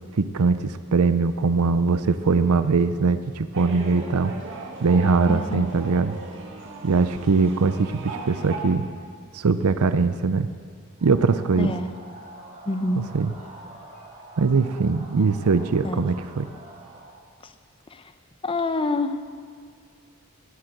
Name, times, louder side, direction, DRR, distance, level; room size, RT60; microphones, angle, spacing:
voice 1, 0.1-4.4 4.8-6.2 6.8-8.9 9.3-10.5 11.0-11.7 13.0-13.3 14.4-16.5, right 4 dB, 90° right, 12 dB, 0.6 m, -21 dB
sound 1, 3.5-8.6, right 3 dB, 60° right, 2.0 m, -37 dB
voice 2, 5.3-5.7 11.6-11.9 12.7-13.0 15.8-16.1 17.9-18.0 18.4-19.2, left 2 dB, 25° left, 10 dB, 0.7 m, -26 dB
sound 2, 11.0-17.2, right 2 dB, 35° right, 3.0 m, -45 dB
17.5 x 8.3 x 7.8 m, 2.1 s
head